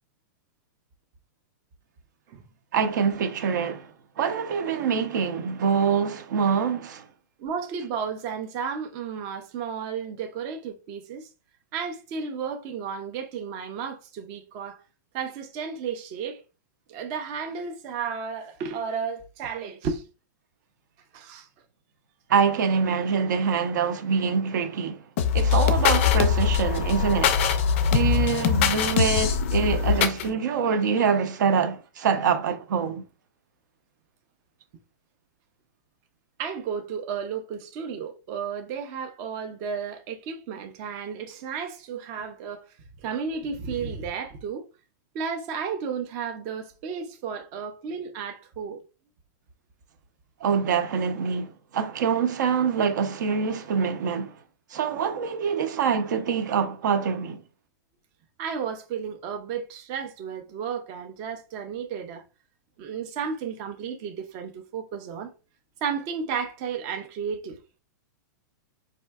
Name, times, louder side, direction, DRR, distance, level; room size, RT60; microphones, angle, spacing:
voice 1, 2.7-7.0 22.3-25.0 25.3-27.4 27.9-33.0 50.4-54.3 54.7-57.4, right 6 dB, 70° right, 0.6 m, -25 dB
voice 2, 7.4-11.3 11.7-14.8 15.1-16.4 16.9-20.0 21.1-21.5 36.4-42.7 43.0-44.7 45.1-48.8 58.4-62.2 62.8-65.3 65.8-67.6, right 6 dB, 25° right, 0.4 m, -33 dB
sound 1, 25.2-30.2, left 7 dB, 40° left, 0.4 m, -22 dB
4.1 x 2.7 x 2.2 m
supercardioid pair, 165°, 10 cm